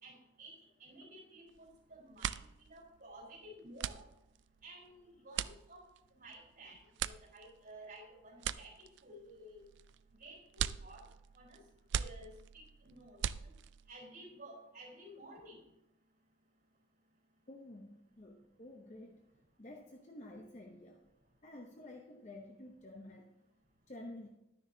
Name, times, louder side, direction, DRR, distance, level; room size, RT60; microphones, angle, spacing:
voice 1, 0.0-0.5 0.8-4.0 4.6-5.9 6.1-8.7 9.0-9.6 10.2-11.0 11.3-11.6 12.0-13.5 13.9-15.6, right 1 dB, 45° right, -3 dB, 3.9 m, -54 dB
sound 1, 1.5-1.8 2.0-14.0, right 9 dB, 60° right, 0.3 m, -41 dB
voice 2, 17.5-19.2 19.6-21.1 21.4-23.3 23.9-24.3, left 1 dB, 35° left, 2 dB, 0.7 m, -51 dB
11.5 x 9.8 x 2.8 m, 0.86 s
head